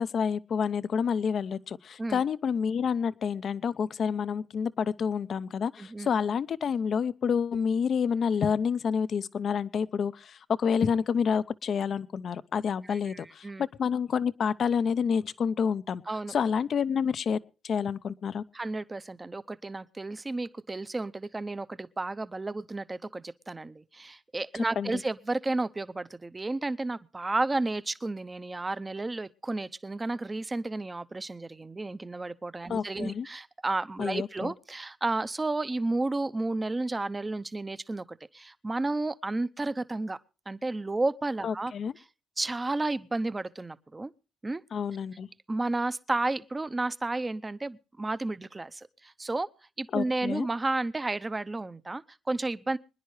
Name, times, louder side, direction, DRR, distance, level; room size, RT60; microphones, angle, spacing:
voice 1, 0.0-16.0 16.3-17.4 17.6-18.4 24.8-24.9 32.7-33.3 34.0-34.5 41.4-41.9 44.7-45.3 49.9-50.5, left 6 dB, 55° left, 0.7 m, -28 dB
voice 2, 5.8-6.1 12.8-13.7 16.1-16.4 18.5-40.2 40.5-41.7 42.4-44.1 44.4-44.6 45.5-49.5 49.8-52.8, right 2 dB, 20° right, 0.7 m, -32 dB
25.5 x 10.0 x 3.2 m
cardioid pair, 90°, 0 cm